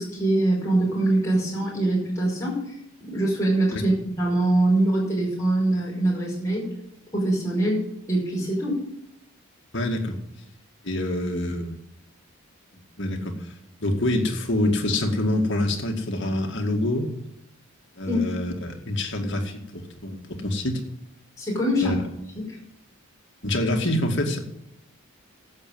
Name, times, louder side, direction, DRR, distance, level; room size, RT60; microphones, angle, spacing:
voice 1, 0.0-2.6 3.0-6.6 7.1-8.8 18.1-18.2 21.4-22.0 22.5-22.6, right 1 dB, 15° left, -3 dB, 5.3 m, -23 dB
voice 2, 9.7-10.2 10.8-11.8 13.0-13.5 13.8-17.1 18.0-20.8 21.8-22.0 23.4-24.4, left 1 dB, 55° left, 3 dB, 2.2 m, -26 dB
11.5 x 8.3 x 7.6 m, 0.79 s
head